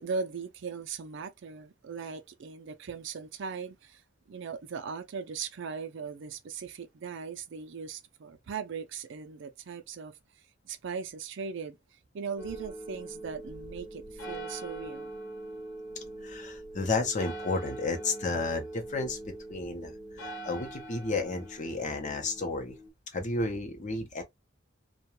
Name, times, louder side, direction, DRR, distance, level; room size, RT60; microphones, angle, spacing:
voice 1, 0.0-4.0 4.3-10.2 10.6-15.1, right 5 dB, 65° right, 0.4 m, -39 dB
sound 1, 12.4-22.9, right 1 dB, 80° left, 1.1 m, -43 dB
voice 2, 16.2-22.8 23.1-24.2, left 3 dB, 40° left, 0.6 m, -32 dB
2.3 x 2.2 x 2.9 m
head